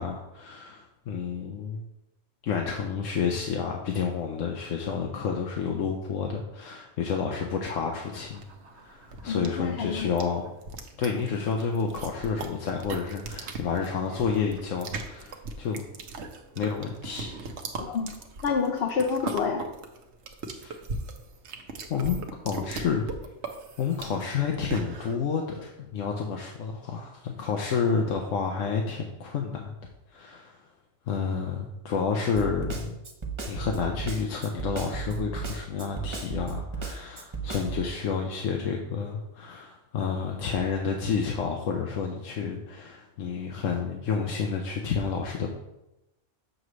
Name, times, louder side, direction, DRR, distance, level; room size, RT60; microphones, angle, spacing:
voice 1, 0.0-1.8 2.4-8.4 8.8-10.5 11.0-15.8 16.6-17.3 20.6-20.7 21.9-23.1 23.8-29.7 30.1-30.6 31.1-33.0 33.5-45.5, left 6 dB, 85° left, 1 dB, 1.1 m, -30 dB
sound 1, 8.1-25.2, right 3 dB, 65° right, 1.0 m, -39 dB
voice 2, 9.3-10.1 17.8-18.1 18.4-19.6, left 5 dB, 60° left, 1 dB, 0.8 m, -28 dB
Snare drum, 32.4-37.9, right 5 dB, 30° right, 0.6 m, -34 dB
7.6 x 3.1 x 6.2 m, 0.92 s
omnidirectional pair, 1.3 m